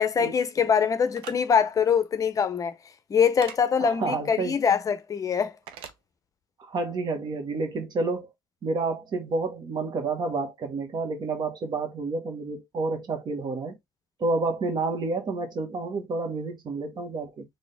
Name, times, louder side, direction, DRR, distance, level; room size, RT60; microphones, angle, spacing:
voice 1, 0.0-2.8 3.1-5.6, left 7 dB, 35° left, 0.6 m, -23 dB
sound 1, 1.1-1.4 3.4-3.6 5.7-6.0, right 8 dB, 65° right, 0.8 m, -40 dB
voice 2, 3.8-4.5 6.7-8.3 8.6-13.8 14.2-17.4, right 3 dB, 50° right, 1.5 m, -29 dB
3.9 x 2.7 x 3.4 m
hypercardioid pair, 75°, 10 cm